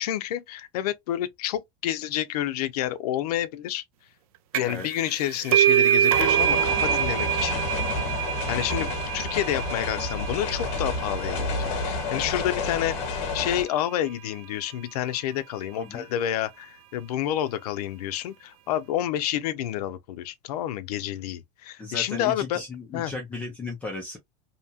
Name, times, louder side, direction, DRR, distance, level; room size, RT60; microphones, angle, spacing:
voice 1, 0.0-3.8 4.5-7.6 8.5-12.9 13.3-22.6 22.9-23.1, left 12 dB, 85° left, 0.6 m, -29 dB
sound 1, 4.5-4.9 5.1-12.4, right 11 dB, 70° right, 0.4 m, -25 dB
sound 2, 6.1-13.6, left 3 dB, 35° left, 0.7 m, -30 dB
voice 2, 21.8-24.2, left 3 dB, 5° left, 0.4 m, -35 dB
2.8 x 2.2 x 2.7 m
supercardioid pair, 175°, 19 cm